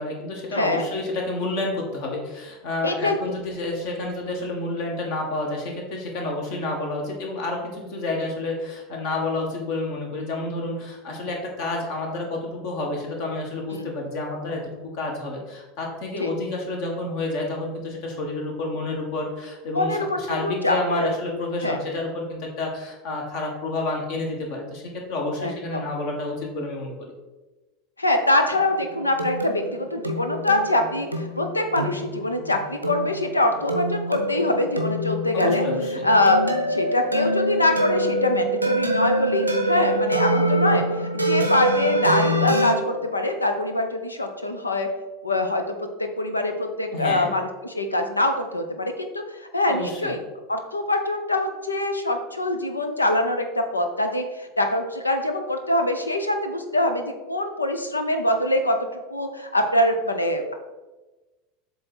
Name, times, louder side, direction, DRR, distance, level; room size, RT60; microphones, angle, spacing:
voice 1, 0.0-27.1 35.3-36.0 46.9-47.3 49.7-50.1, left 2 dB, 55° left, 0 dB, 1.6 m, -29 dB
voice 2, 0.5-0.9 2.8-3.2 13.7-13.9 16.2-16.3 19.7-21.1 21.6-21.8 25.4-25.8 28.0-35.6 36.0-44.9 45.2-50.2 50.5-60.5, left 1 dB, 85° left, 6 dB, 0.6 m, -24 dB
sound 1, 28.5-42.7, right 1 dB, 90° right, 0.7 m, -25 dB
7.4 x 3.5 x 4.4 m, 1.1 s
figure-of-eight pair, 80°, 0 cm